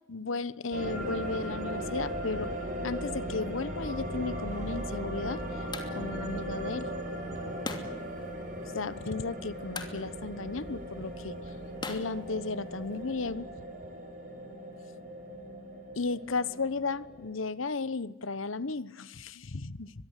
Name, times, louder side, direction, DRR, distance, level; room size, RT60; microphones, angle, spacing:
voice 1, 0.1-2.5 2.8-5.4 5.9-6.9 7.3-7.6 8.7-11.4 11.9-13.5 15.9-19.9, left 3 dB, 75° left, 17 dB, 1.1 m, -34 dB
sound 1, 0.7-17.3, equal, 45° right, 6.8 m, -38 dB
sound 2, 4.5-13.0, left 3 dB, 25° left, 2.8 m, -46 dB
23.5 x 22.5 x 8.3 m, 0.93 s
head